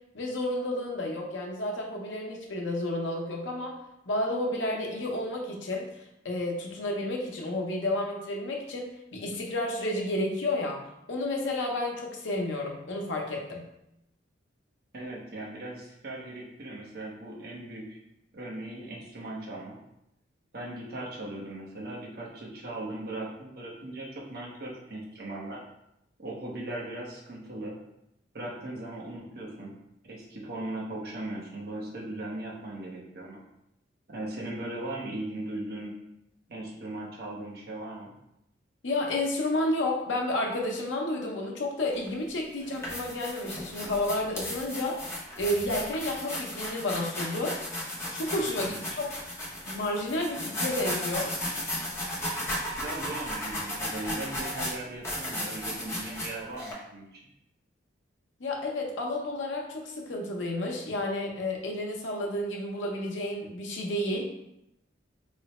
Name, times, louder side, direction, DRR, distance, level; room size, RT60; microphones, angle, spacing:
voice 1, 0.1-3.7 4.1-10.8 11.1-13.7 38.8-45.0 45.4-47.6 48.1-48.6 48.9-49.1 49.7-51.3 58.4-64.2, left 1 dB, 80° left, 0 dB, 0.7 m, -31 dB
voice 2, 14.9-18.0 18.3-19.8 20.5-25.6 26.2-27.8 28.3-29.7 30.0-33.4 34.1-35.9 36.5-38.1 48.4-48.8 52.8-57.2, right 1 dB, 55° right, -3 dB, 0.7 m, -38 dB
sound 1, 41.9-42.1 42.6-56.7, left 1 dB, 15° left, 0.7 m, -35 dB
3.2 x 2.0 x 4.1 m, 0.84 s
head